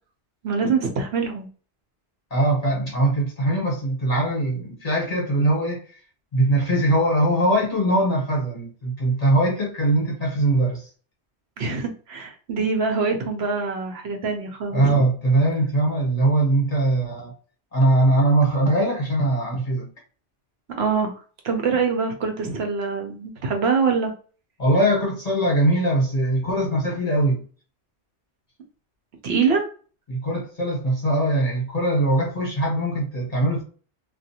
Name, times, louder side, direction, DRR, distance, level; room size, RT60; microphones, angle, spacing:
voice 1, 0.4-1.5 11.6-15.0 20.8-24.1 29.2-29.6, right 5 dB, 70° right, 0.8 m, -24 dB
voice 2, 2.3-5.8 6.3-10.8 14.7-17.3 17.7-19.9 24.6-27.4 30.1-33.6, right 1 dB, 35° left, 1.0 m, -21 dB
2.4 x 2.3 x 2.7 m
omnidirectional pair, 1.2 m